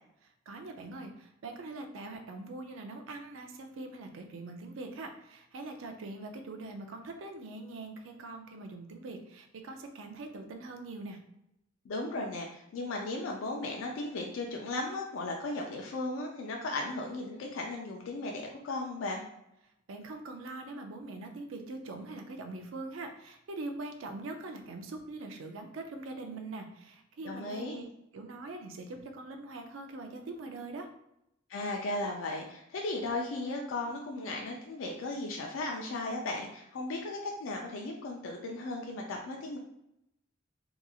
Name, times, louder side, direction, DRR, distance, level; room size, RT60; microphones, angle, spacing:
voice 1, 0.2-11.2 19.9-27.8 28.1-30.9, right 2 dB, 80° right, 5 dB, 0.4 m, -43 dB
voice 2, 11.9-19.3 27.2-27.8 31.5-39.6, left 2 dB, 80° left, 0 dB, 0.4 m, -36 dB
2.9 x 2.4 x 2.3 m, 0.81 s
head